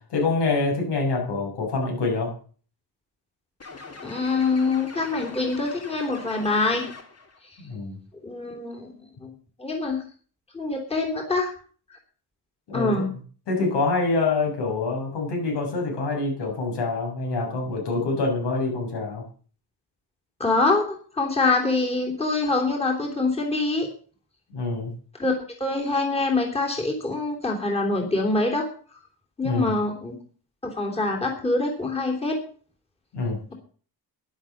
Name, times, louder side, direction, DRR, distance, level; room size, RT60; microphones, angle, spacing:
voice 1, 0.1-2.3 7.6-8.0 12.7-12.9 13.5-19.2 24.5-24.9 29.4-29.7 33.1-33.4, left 3 dB, 80° left, 0 dB, 7.1 m, -25 dB
sound 1, 3.6-7.4, left 3 dB, 35° left, 2.9 m, -42 dB
voice 2, 4.0-6.9 8.2-8.9 9.2-9.3 9.6-10.0 10.5-11.5 11.9-12.0 12.7-13.1 20.4-23.9 25.2-25.3 25.6-28.7 29.4-30.1 30.6-32.4, left 3 dB, 15° left, 0 dB, 3.3 m, -25 dB
12.0 x 11.0 x 7.3 m, 0.43 s
wide cardioid pair, 145°, 41 cm